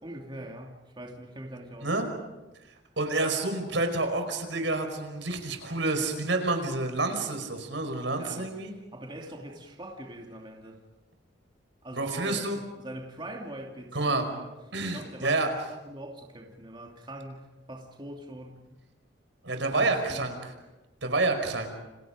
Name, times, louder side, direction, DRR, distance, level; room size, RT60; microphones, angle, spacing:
voice 1, 0.0-1.9 8.1-8.7 8.9-10.8 11.8-14.5 14.8-15.4 15.7-18.6 19.7-20.3, right 1 dB, 25° right, 2.8 m, -43 dB
voice 2, 3.0-8.7 11.9-12.6 13.9-14.2 14.7-15.5 19.4-20.4 21.0-21.7, right 2 dB, 85° right, 5.1 m, -28 dB
29.5 x 27.5 x 5.1 m
head